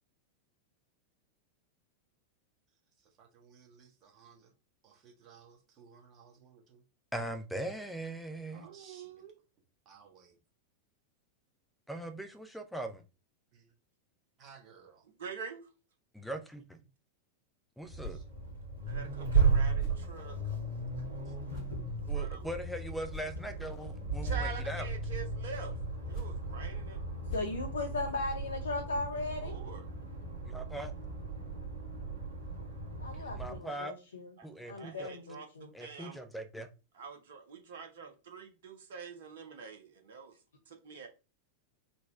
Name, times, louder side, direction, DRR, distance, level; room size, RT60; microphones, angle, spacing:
voice 1, 3.2-4.5 4.8-6.8 8.5-9.2 9.8-10.4 13.5-13.7 14.4-15.0 18.1-18.2 21.2-21.3 33.1-33.4, right 6 dB, 35° right, 1.3 m, -58 dB
voice 2, 7.1-8.7 11.9-13.0 16.1-16.8 17.8-18.2 22.1-24.9 30.5-30.9 33.4-33.9 34.4-35.1 35.7-36.7, right 1 dB, ahead, 0.6 m, -40 dB
voice 3, 8.5-9.3 15.2-15.7 18.9-20.4 22.1-22.5 24.2-25.7 26.0-27.0 29.4-29.9 34.4-34.5 34.8-36.2 36.9-40.4 40.7-41.1, right 6 dB, 55° right, 0.7 m, -45 dB
sound 1, 17.8-21.2 21.5-25.0 25.9-28.5, left 2 dB, 40° left, 0.8 m, -50 dB
Accelerating revving vroom, 17.9-33.6, right 4 dB, 75° right, 1.9 m, -35 dB
voice 4, 27.3-29.6 33.0-34.3 34.7-35.7, left 2 dB, 70° left, 0.7 m, -37 dB
4.2 x 2.3 x 4.2 m
figure-of-eight pair, 90°, 0 cm